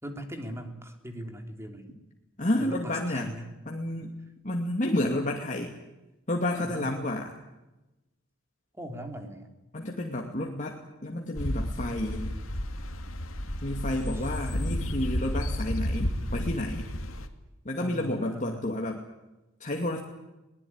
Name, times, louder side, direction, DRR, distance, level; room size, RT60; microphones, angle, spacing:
voice 1, 0.0-1.9 2.6-3.6 6.6-6.9 8.7-9.5 14.1-14.3 17.8-18.7, equal, 15° right, 5 dB, 3.5 m, -40 dB
voice 2, 2.4-3.3 3.7-4.1 4.4-5.7 6.3-7.3 9.7-12.4 13.6-16.9 17.6-19.0 19.6-20.0, left 1 dB, 40° left, 1 dB, 2.5 m, -30 dB
sound 1, 11.4-17.3, equal, 80° left, 2.5 m, -32 dB
22.5 x 20.0 x 9.7 m, 1.0 s
head